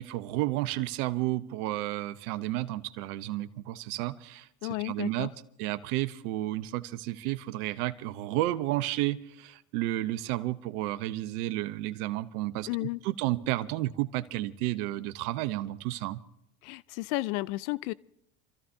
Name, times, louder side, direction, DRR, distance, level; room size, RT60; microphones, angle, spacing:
voice 1, 0.0-4.5 4.8-5.3 5.6-16.2, right 16 dB, 75° right, 1.0 m, -32 dB
voice 2, 4.6-5.3 12.7-13.0 16.6-17.9, left 20 dB, 70° left, 0.6 m, -32 dB
28.5 x 14.5 x 2.8 m
hypercardioid pair, 85°, 45 cm